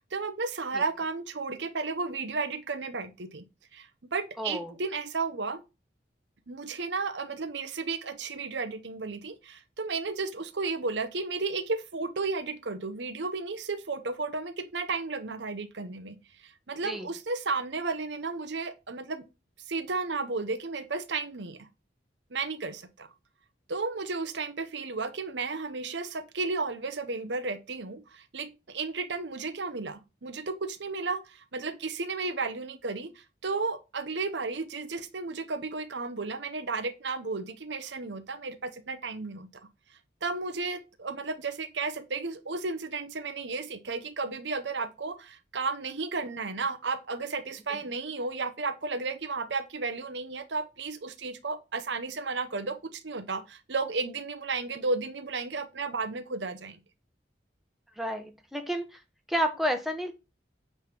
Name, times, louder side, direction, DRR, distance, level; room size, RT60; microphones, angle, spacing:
voice 1, 0.1-3.4 3.7-5.6 6.5-16.2 16.4-19.2 19.7-21.7 22.3-23.1 23.7-39.5 40.2-56.8, right 4 dB, 75° right, 0.9 m, -33 dB
voice 2, 4.4-4.7 16.8-17.1 47.7-47.8 58.0-59.0 59.3-60.1, equal, ahead, 1.1 m, -31 dB
9.1 x 3.4 x 6.0 m
head